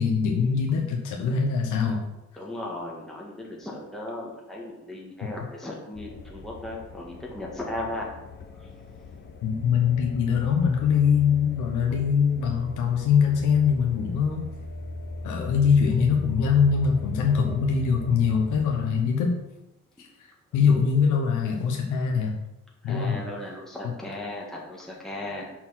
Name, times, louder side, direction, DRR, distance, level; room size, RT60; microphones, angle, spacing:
voice 1, 0.0-2.0 5.2-5.3 9.4-14.4 15.2-19.4 20.0-22.3 22.8-23.2, left 6 dB, 85° left, 1 dB, 1.1 m, -23 dB
voice 2, 2.4-8.1 22.8-25.5, left 1 dB, ahead, -3 dB, 1.6 m, -36 dB
sound 1, 6.0-18.9, left 3 dB, 35° left, 0.9 m, -39 dB
6.1 x 4.3 x 5.7 m, 0.94 s
cardioid pair, 90°, 30 cm